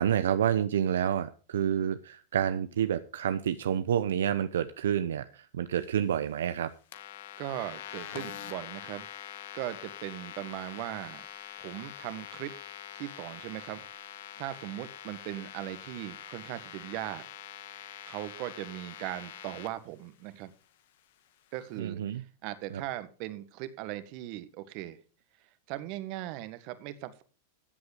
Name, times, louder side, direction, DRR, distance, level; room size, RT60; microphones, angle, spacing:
voice 1, 0.0-6.7 21.8-22.2 22.7-22.8, right 9 dB, 80° right, 11 dB, 0.7 m, -29 dB
sound 1, 6.9-19.7, left 10 dB, 70° left, 1.7 m, -44 dB
voice 2, 7.4-9.1 9.5-11.2 11.6-12.5 12.9-13.8 14.4-17.3 18.1-20.5 21.5-25.0 25.7-27.2, right 15 dB, 55° right, 12 dB, 1.6 m, -39 dB
14.0 x 7.9 x 5.2 m, 0.37 s
hypercardioid pair, 110°, 0 cm